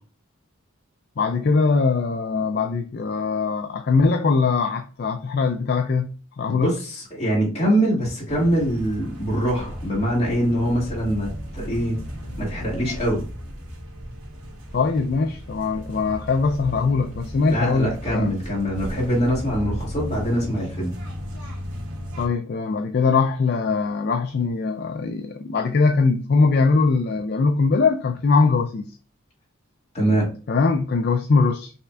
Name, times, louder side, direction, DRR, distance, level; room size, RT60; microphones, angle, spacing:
voice 1, 1.2-6.7 14.7-18.3 22.2-28.9 30.5-31.7, left 4 dB, 50° left, 0.4 m, -21 dB
voice 2, 6.5-12.0 12.4-13.2 17.5-20.9 29.9-30.3, equal, 30° left, 2.3 m, -23 dB
sound 1, 8.3-22.3, equal, 90° right, 1.7 m, -35 dB
5.5 x 3.2 x 2.4 m
head